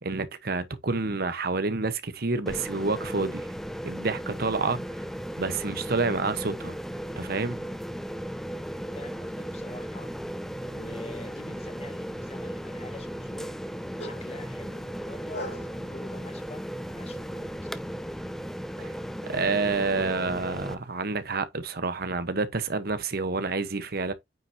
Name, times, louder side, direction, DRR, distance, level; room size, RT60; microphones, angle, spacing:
voice 1, 0.0-3.5 3.8-5.0 5.4-6.8 7.2-7.6 18.8-18.9 19.2-24.1, right 3 dB, 60° right, 1.1 m, -28 dB
sound 1, 2.5-20.7, equal, ahead, 0.7 m, -36 dB
voice 2, 8.9-10.1 10.7-13.5 14.0-17.7, left 2 dB, 35° left, 1.4 m, -46 dB
sound 2, 10.8-21.3, left 1 dB, 70° left, 4.0 m, -49 dB
9.1 x 5.6 x 2.8 m
head